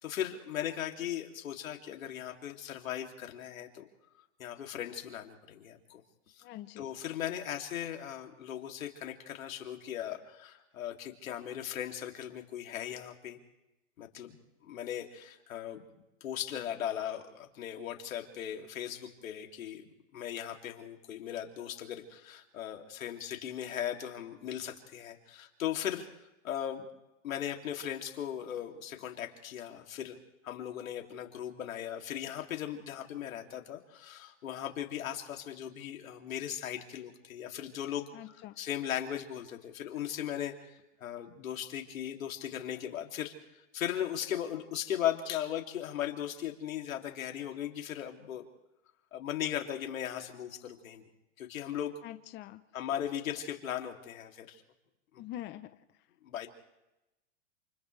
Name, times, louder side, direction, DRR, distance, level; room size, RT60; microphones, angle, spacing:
voice 1, 0.0-3.9 4.4-6.0 6.3-6.4 6.8-13.4 14.0-14.4 14.6-15.8 16.2-19.9 20.1-26.1 26.4-26.9 27.2-30.2 30.4-43.3 43.7-48.5 49.1-51.1 51.4-52.0 52.7-54.6 55.1-55.3 56.2-56.5, left 10 dB, 80° left, 3 dB, 2.9 m, -38 dB
voice 2, 6.4-6.9 38.1-38.6 52.0-52.6 55.2-55.7, left 14 dB, 25° left, 10 dB, 0.8 m, -44 dB
28.5 x 28.5 x 3.4 m, 0.93 s
hypercardioid pair, 130°, 40 cm